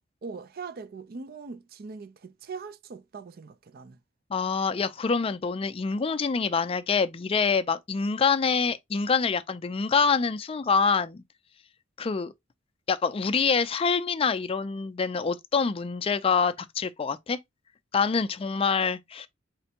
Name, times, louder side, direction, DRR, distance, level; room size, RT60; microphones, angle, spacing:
voice 1, 0.2-4.0, right 4 dB, 50° right, 0.4 m, -41 dB
voice 2, 4.3-11.2 12.0-12.3 12.9-17.4 17.9-19.3, left 5 dB, 30° left, 0.4 m, -26 dB
4.3 x 3.3 x 2.8 m
head